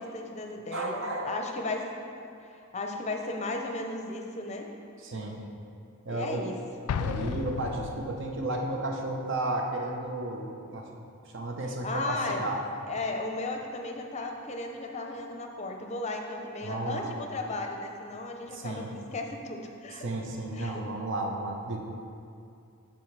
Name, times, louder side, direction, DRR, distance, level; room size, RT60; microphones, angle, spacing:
voice 1, 0.0-1.9 2.2-4.7 6.1-6.6 11.8-12.5 12.9-20.0 20.5-20.8, left 2 dB, 30° left, 3 dB, 0.6 m, -35 dB
voice 2, 0.7-1.3 5.0-5.4 6.0-6.4 7.0-10.9 11.3-12.6 16.6-17.1 18.5-18.9 20.0-21.8, right 2 dB, 55° right, 1 dB, 0.8 m, -33 dB
Explosion, 6.9-8.5, left 6 dB, 85° left, 0.3 m, -33 dB
13.0 x 4.4 x 3.2 m, 2.5 s
head